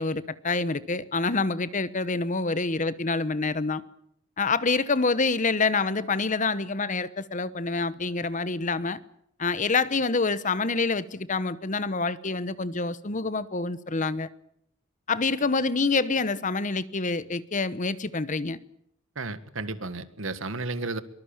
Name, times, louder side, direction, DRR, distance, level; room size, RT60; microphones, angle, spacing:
voice 1, 0.0-3.8 4.4-9.0 9.4-14.3 15.1-18.6, left 3 dB, 35° left, 16 dB, 1.0 m, -27 dB
voice 2, 19.1-21.0, right 3 dB, 65° right, 13 dB, 1.7 m, -33 dB
23.5 x 20.0 x 8.9 m, 0.72 s
head